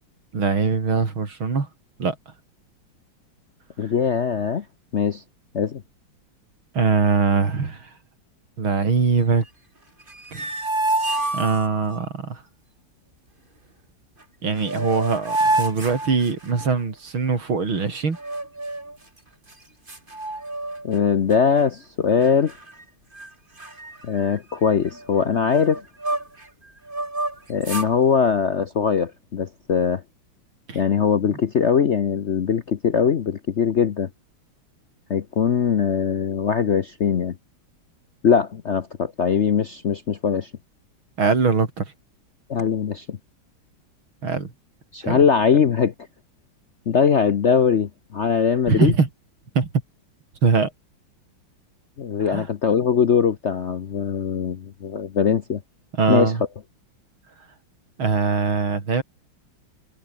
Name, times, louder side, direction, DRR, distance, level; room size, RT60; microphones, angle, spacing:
voice 1, 0.3-1.7 2.0-2.2 6.7-7.9 8.6-9.4 10.3-10.5 11.3-12.4 14.4-18.2 30.7-30.8 41.2-41.9 44.2-44.5 45.0-45.2 48.7-49.1 49.6-49.7 50.4-50.7 52.2-52.5 56.0-56.4 58.0-59.0, right 4 dB, 80° right, 4.4 m, -22 dB
voice 2, 3.8-4.6 4.9-5.2 5.5-5.8 20.8-22.5 24.0-25.8 27.5-30.0 30.7-34.1 35.1-37.4 38.2-40.5 42.5-43.2 44.9-45.9 46.9-48.9 52.0-55.6 56.1-56.3, left 7 dB, 55° left, 0.8 m, -21 dB
sound 1, 10.0-12.0 14.2-14.3 14.6-16.8 18.1-19.0 19.5-19.6 19.9-21.0 21.3-21.6 22.2-22.8 23.1-23.3 23.6-26.5 26.9-27.9, right 2 dB, 25° right, 4.0 m, -28 dB
omnidirectional pair, 2.2 m